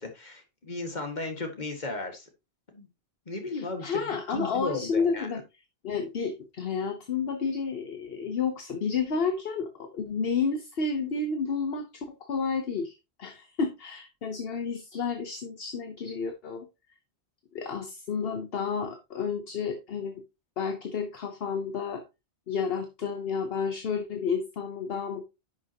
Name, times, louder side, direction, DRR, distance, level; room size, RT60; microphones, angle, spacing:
voice 1, 0.0-2.3 2.7-2.9 3.3-4.0 4.3-5.3, left 3 dB, 40° left, 2.1 m, -35 dB
voice 2, 3.5-5.4 5.8-16.7 17.5-20.2 20.6-22.0 22.5-25.3, left 5 dB, 60° left, 1.2 m, -31 dB
10.5 x 6.1 x 2.9 m
omnidirectional pair, 1.1 m